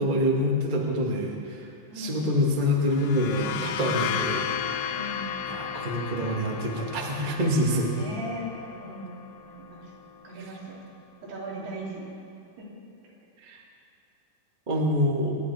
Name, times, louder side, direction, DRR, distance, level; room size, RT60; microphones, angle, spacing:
voice 1, 0.0-1.7 1.9-4.5 5.5-7.9 10.4-10.5 13.4-13.6 14.7-15.4, left 1 dB, 55° right, -2 dB, 0.5 m, -26 dB
voice 2, 1.9-2.2 4.9-5.3 8.0-9.2 9.5-9.9 10.2-10.8 11.2-12.1 12.6-12.7, equal, 85° right, -5 dB, 4.8 m, -38 dB
sound 1, 2.8-10.3, left 8 dB, 80° left, 2.3 m, -34 dB
25.5 x 10.5 x 4.3 m, 2.4 s
omnidirectional pair, 4.5 m